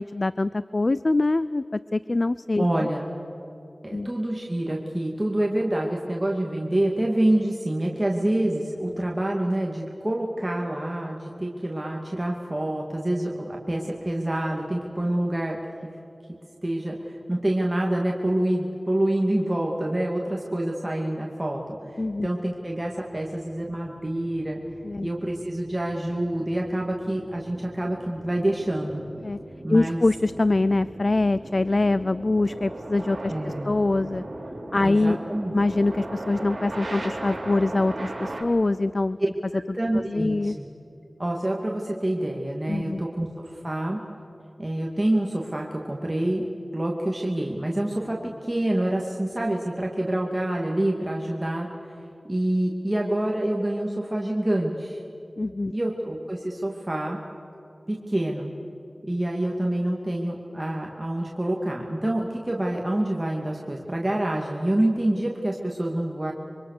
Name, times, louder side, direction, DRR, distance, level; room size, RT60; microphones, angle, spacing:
voice 1, 0.0-2.7 3.9-4.1 22.0-22.3 24.8-25.1 29.2-29.4 29.7-34.2 34.7-35.2 35.5-39.2 39.9-40.6 42.7-43.0 55.4-55.7, left 2 dB, 50° left, 16 dB, 0.4 m, -24 dB
voice 2, 2.6-3.1 3.8-15.9 16.6-24.6 25.0-29.0 29.6-30.0 33.3-33.8 34.8-35.5 39.7-40.7 41.2-44.0 44.6-46.4 46.7-52.0 52.3-55.0 55.7-57.2 57.9-58.5 59.1-66.3, right 1 dB, 25° right, -1 dB, 2.5 m, -27 dB
sound 1, 22.4-38.4, right 1 dB, 60° right, 4.5 m, -38 dB
26.0 x 24.5 x 6.8 m, 2.7 s
wide cardioid pair, 60°, 0 cm